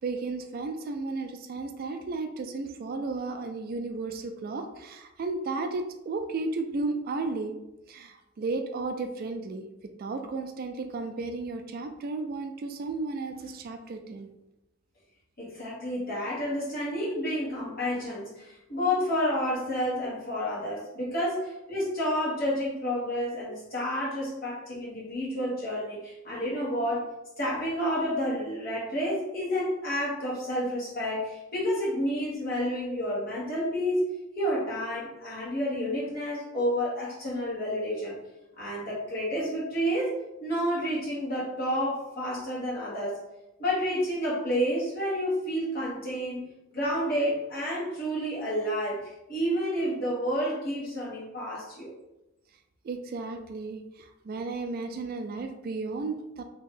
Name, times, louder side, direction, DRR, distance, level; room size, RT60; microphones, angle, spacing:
voice 1, 0.0-7.5 7.9-9.7 10.0-14.3 52.8-56.4, right 3 dB, 45° right, 6 dB, 0.3 m, -34 dB
voice 2, 15.4-27.1 27.4-34.0 34.3-38.2 38.6-40.1 40.4-43.2 43.6-46.4 46.7-51.9, equal, 45° left, -7 dB, 1.4 m, -30 dB
2.8 x 2.6 x 3.7 m, 0.94 s
head